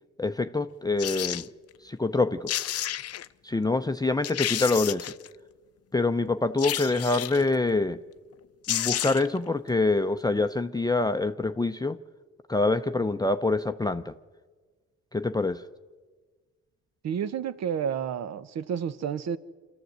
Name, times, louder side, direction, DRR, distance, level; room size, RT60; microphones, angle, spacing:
voice 1, 0.2-1.5 1.8-2.6 3.4-5.1 5.9-8.0 8.7-12.0 12.5-14.1 15.1-15.6, left 3 dB, 15° left, 0.6 m, -26 dB
sound 1, 1.0-1.5 2.2-2.3 2.5-3.3 3.8-3.9 4.2-5.3 6.6-7.5 8.3-8.4 8.6-9.4 9.7-9.8, left 12 dB, 55° left, 0.6 m, -31 dB
voice 2, 17.0-19.4, right 8 dB, 60° right, 1.0 m, -30 dB
25.5 x 14.0 x 8.0 m
cardioid pair, 90°, 30 cm